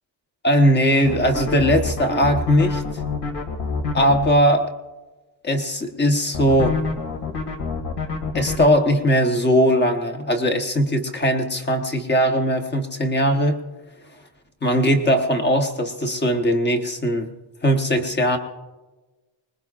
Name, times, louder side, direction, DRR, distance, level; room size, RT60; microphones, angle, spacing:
voice 1, 0.4-2.8 3.9-4.7 5.4-6.8 8.3-13.6 14.6-17.3 17.6-18.4, equal, 20° left, 4 dB, 1.1 m, -19 dB
sound 1, 1.0-4.3 6.3-8.7, left 4 dB, 55° left, 2.1 m, -27 dB
24.5 x 20.5 x 2.4 m, 1.2 s
wide cardioid pair, 170°, 47 cm